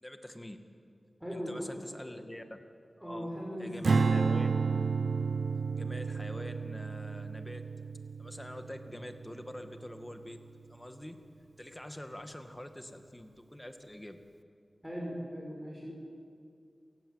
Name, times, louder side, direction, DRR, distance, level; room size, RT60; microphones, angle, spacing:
voice 1, 0.0-0.6 1.3-2.6 3.0-3.3 3.6-4.5 5.8-7.7 8.2-10.4 10.7-11.2 11.6-14.2, left 1 dB, 20° left, 7 dB, 2.1 m, -45 dB
voice 2, 1.2-1.7 2.0-2.1 3.0-4.2 14.8-15.9, equal, 10° right, -3 dB, 6.0 m, -39 dB
Strum, 3.8-10.2, right 4 dB, 90° right, 0.6 m, -31 dB
28.0 x 16.5 x 8.2 m, 2.3 s
cardioid pair, 45°, 0 cm